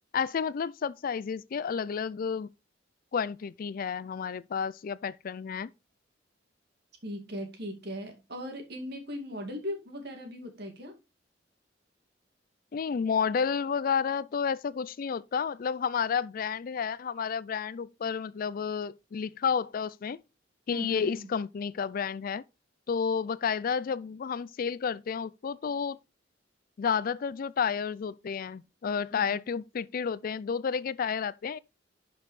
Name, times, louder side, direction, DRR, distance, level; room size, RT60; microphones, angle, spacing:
voice 1, 0.1-2.5 3.1-5.7 12.7-20.2 20.7-22.4 22.9-26.0 26.8-31.6, left 6 dB, 50° left, 0.4 m, -31 dB
voice 2, 7.0-11.0 20.7-21.3 29.1-29.4, equal, 60° right, 2.2 m, -39 dB
11.0 x 5.2 x 3.2 m
head